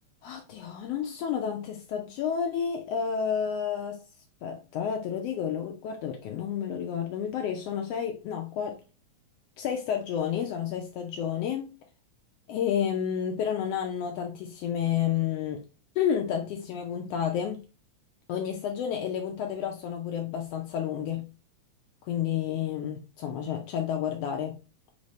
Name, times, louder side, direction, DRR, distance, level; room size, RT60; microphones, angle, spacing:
voice 1, 0.2-4.0 4.4-8.8 9.6-11.8 12.5-15.6 16.0-17.6 18.3-21.3 22.0-24.6, left 8 dB, 85° left, 1.3 m, -30 dB
4.4 x 2.8 x 3.0 m
omnidirectional pair, 3.4 m